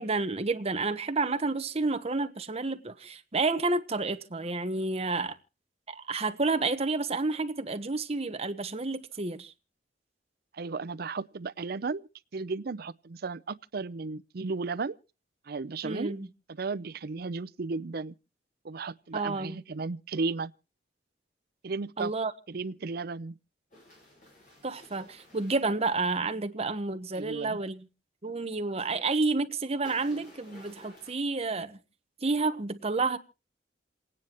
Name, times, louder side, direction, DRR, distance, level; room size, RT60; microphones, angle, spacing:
voice 1, 0.0-5.4 5.9-9.5 15.8-16.3 19.1-19.6 22.0-22.3 24.6-27.9 28.2-31.8 32.2-33.2, right 3 dB, 35° right, 1.1 m, -30 dB
voice 2, 10.5-15.0 15.5-16.1 16.6-18.1 18.6-20.5 21.6-22.1 22.5-23.4 27.2-27.6, right 4 dB, 60° right, 0.6 m, -34 dB
sound 1, 23.7-25.6 29.8-31.1, left 1 dB, 50° left, 7.6 m, -53 dB
28.5 x 9.6 x 3.0 m
head